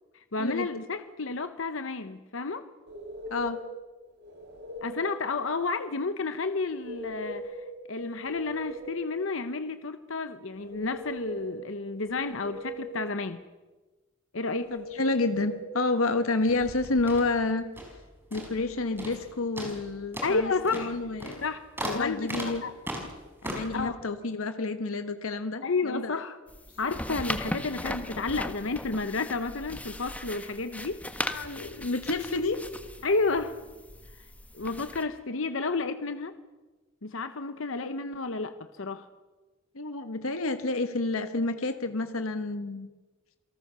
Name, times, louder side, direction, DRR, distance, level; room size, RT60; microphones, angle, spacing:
voice 1, 0.3-2.7 4.8-13.4 14.3-14.7 20.2-20.9 21.4-21.7 21.9-22.7 23.7-24.0 25.6-26.4 26.8-31.1 33.0-33.6 34.5-36.4 37.0-39.1, left 3 dB, 65° left, 10 dB, 1.0 m, -31 dB
sound 1, 2.9-3.7 4.2-5.1 6.7-7.7 8.0-9.1 10.5-11.6 12.0-13.0 14.6-15.6, equal, 55° right, 3.6 m, -40 dB
voice 2, 3.3-3.6 14.7-17.7 18.3-21.4 21.8-22.6 23.4-26.2 26.8-26.9 31.2-32.6 39.7-42.9, left 3 dB, 90° left, 9 dB, 1.3 m, -29 dB
sound 2, 16.4-18.0 18.3-18.7 19.0-19.3 19.6-23.8, equal, 10° right, 4.8 m, -38 dB
sound 3, 26.5-35.0, left 1 dB, 5° left, 1.3 m, -38 dB
28.0 x 18.5 x 6.9 m, 1.2 s
head